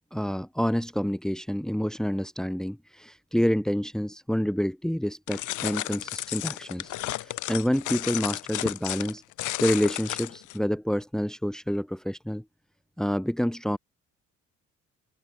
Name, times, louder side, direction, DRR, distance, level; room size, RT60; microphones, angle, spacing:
voice 1, 0.1-6.9 7.2-9.2 9.6-12.4 13.0-13.8, equal, ahead, 3.4 m, -28 dB
sound 1, 5.3-10.6, left 16 dB, 85° left, 1.2 m, -33 dB
cardioid pair, 90°, 30 cm